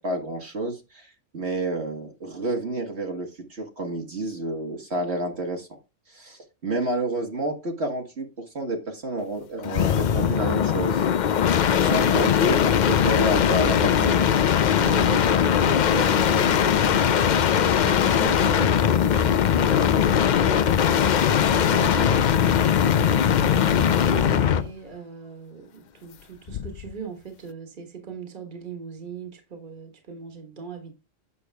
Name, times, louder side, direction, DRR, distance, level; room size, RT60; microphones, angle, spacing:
voice 1, 0.0-5.7 6.1-8.3 8.5-11.0 11.8-14.3, right 1 dB, 60° right, 1.7 m, -29 dB
sound 1, 9.6-24.7 26.5-26.9, left 8 dB, 60° left, 0.5 m, -20 dB
voice 2, 14.8-22.5 22.8-30.9, right 6 dB, 40° right, 1.6 m, -38 dB
8.4 x 6.5 x 3.4 m
omnidirectional pair, 1.3 m